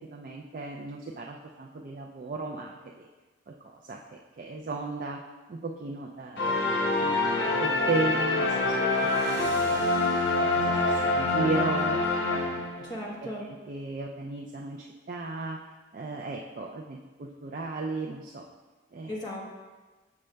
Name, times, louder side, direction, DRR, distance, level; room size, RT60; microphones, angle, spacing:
voice 1, 0.1-3.1 3.5-5.2 5.5-9.6 10.4-12.0 12.3-12.7 13.2-15.6 15.9-18.5 18.9-19.2, right 3 dB, 45° right, 0 dB, 0.3 m, -35 dB
sound 1, 6.4-13.0, left 2 dB, 65° left, 0.9 m, -26 dB
voice 2, 11.5-11.9 12.8-13.5 19.1-19.4, left 1 dB, 20° left, -4 dB, 1.0 m, -37 dB
7.1 x 6.4 x 2.2 m, 1.3 s
head